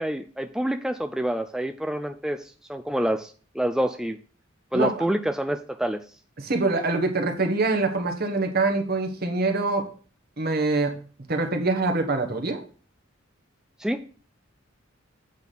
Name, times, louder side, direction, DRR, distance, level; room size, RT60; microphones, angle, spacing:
voice 1, 0.0-4.2 4.7-6.0 13.8-14.0, right 1 dB, 5° right, 0.4 m, -27 dB
voice 2, 4.7-5.0 6.4-9.9 10.4-11.0 11.3-12.6, right 3 dB, 50° right, 1.4 m, -24 dB
8.2 x 4.1 x 6.8 m
head